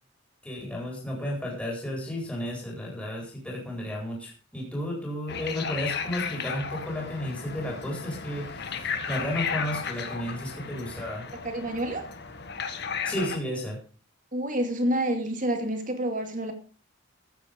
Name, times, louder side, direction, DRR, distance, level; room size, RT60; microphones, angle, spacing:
voice 1, 0.4-11.2 13.0-13.8, left 1 dB, 5° left, 4.3 m, -33 dB
sound 1, 5.3-13.4, left 6 dB, 50° left, 1.7 m, -34 dB
voice 2, 11.4-12.1 14.3-16.5, right 1 dB, 40° right, 2.3 m, -28 dB
15.0 x 9.1 x 5.2 m
head